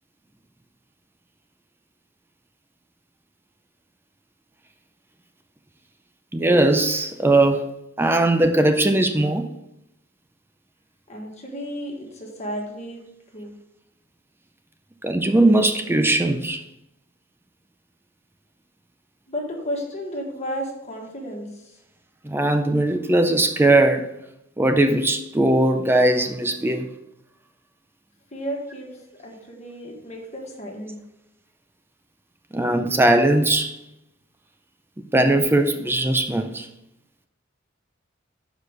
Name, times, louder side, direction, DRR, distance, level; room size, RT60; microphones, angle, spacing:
voice 1, 6.3-7.7 8.0-9.5 15.0-16.6 22.2-24.1 24.6-26.9 32.5-33.8 35.1-36.7, right 2 dB, 10° right, 0.4 m, -19 dB
voice 2, 11.1-13.0 13.3-13.5 19.3-21.7 28.3-28.9 29.2-31.0, equal, 35° left, 1.5 m, -33 dB
6.6 x 5.0 x 5.0 m
head